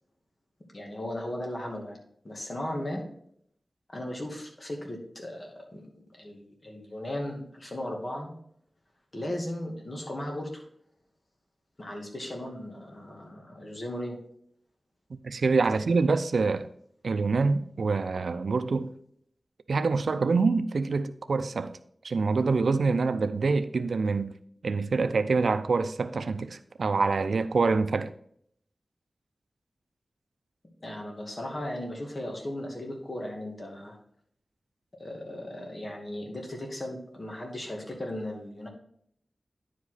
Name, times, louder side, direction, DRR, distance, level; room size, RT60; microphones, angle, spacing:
voice 1, 0.7-2.0 2.2-3.0 3.9-5.9 6.2-8.3 9.1-10.6 11.8-14.2 15.7-15.8 30.8-34.0 35.0-38.7, left 1 dB, 35° left, 2.4 m, -36 dB
voice 2, 15.2-16.7 17.0-18.9 19.7-21.8 22.0-24.3 24.6-28.1, right 4 dB, 90° right, 0.5 m, -26 dB
10.0 x 5.1 x 4.1 m
wide cardioid pair, 90°, 0 cm